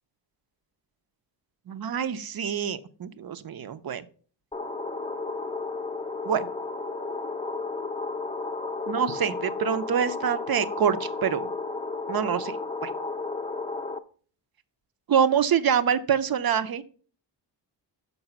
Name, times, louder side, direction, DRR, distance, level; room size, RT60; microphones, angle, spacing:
voice 1, 1.7-4.1 6.3-6.5 8.9-11.5 12.1-12.6 12.8-12.9 15.1-16.8, right 8 dB, 55° right, 12 dB, 0.7 m, -26 dB
sound 1, 4.5-14.0, left 3 dB, 15° left, 0.6 m, -33 dB
6.5 x 5.4 x 5.9 m, 0.43 s
cardioid pair, 95°, 44 cm